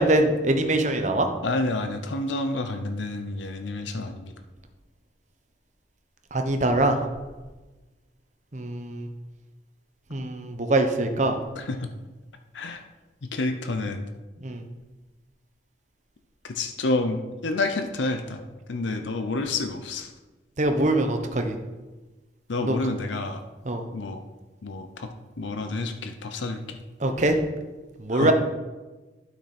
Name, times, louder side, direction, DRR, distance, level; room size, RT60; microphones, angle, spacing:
voice 1, 0.0-1.3 6.3-7.1 8.5-9.1 10.1-11.4 14.4-14.7 20.6-21.6 22.6-22.8 23.6-23.9 27.0-27.4 28.0-28.3, right 2 dB, 40° right, 5 dB, 1.0 m, -23 dB
voice 2, 1.4-4.3 11.6-11.9 12.5-12.8 13.3-14.0 16.4-18.4 18.7-20.1 22.5-23.4 23.9-24.2 24.6-25.1 25.4-26.8 28.1-28.3, left 2 dB, 75° left, 6 dB, 0.7 m, -29 dB
12.0 x 6.0 x 4.3 m, 1.2 s
head